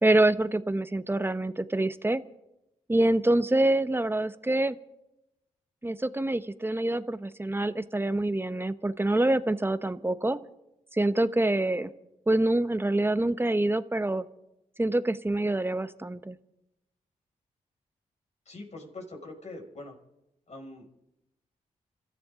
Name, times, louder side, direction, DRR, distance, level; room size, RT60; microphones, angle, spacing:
voice 1, 0.0-2.2 2.9-4.8 5.8-10.4 10.9-11.9 12.3-14.2 14.8-16.4, right 1 dB, 15° right, 13 dB, 1.0 m, -26 dB
voice 2, 18.5-19.9 20.5-21.1, left 2 dB, 55° left, 1 dB, 6.2 m, -43 dB
27.0 x 14.0 x 3.8 m, 0.87 s
supercardioid pair, 50°, 14 cm